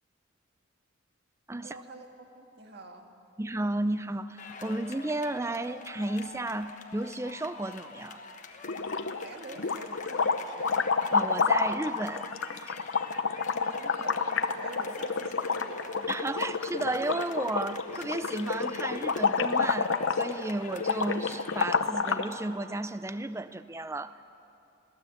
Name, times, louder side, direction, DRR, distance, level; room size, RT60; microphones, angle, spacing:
voice 1, 1.6-3.1 9.1-10.8 13.6-16.1, right 2 dB, 55° right, 1.8 m, -47 dB
voice 2, 3.4-8.2 11.1-12.8 16.1-24.2, right 2 dB, 15° right, 0.5 m, -33 dB
sound 1, 4.4-21.7, left 4 dB, 40° left, 1.2 m, -46 dB
sound 2, 8.6-9.3 9.6-22.3, left 5 dB, 80° left, 0.9 m, -29 dB
22.5 x 17.0 x 8.0 m
head